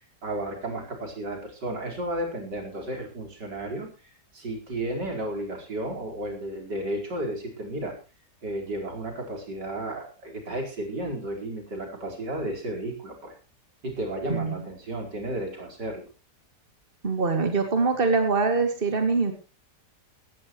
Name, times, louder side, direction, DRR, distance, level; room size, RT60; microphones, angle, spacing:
voice 1, 0.2-3.9 4.3-7.9 8.4-13.3 13.8-16.1, right 1 dB, 80° right, 2 dB, 5.3 m, -33 dB
voice 2, 17.0-19.3, right 4 dB, 30° right, 6 dB, 2.7 m, -23 dB
18.0 x 15.0 x 3.1 m, 0.32 s
omnidirectional pair, 1.8 m